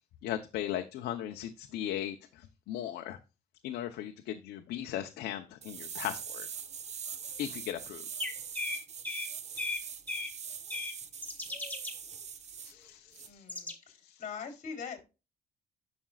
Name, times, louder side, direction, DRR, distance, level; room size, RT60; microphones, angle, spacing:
voice 1, 0.2-3.2 3.6-6.5 7.4-8.1 12.6-13.4 13.9-14.2, left 11 dB, 75° left, 0.9 m, -38 dB
rewind robot toy unwinding, 5.6-12.7 13.1-13.3, right 7 dB, 40° right, 1.0 m, -43 dB
sound 1, 8.2-9.3 9.6-9.8 10.1-10.3 10.7-10.9 11.2-11.9 13.5-13.7, left 3 dB, 10° left, 1.9 m, -36 dB
voice 2, 13.2-15.0, left 6 dB, 45° left, 3.7 m, -43 dB
11.5 x 6.1 x 2.4 m
cardioid pair, 110°, 17 cm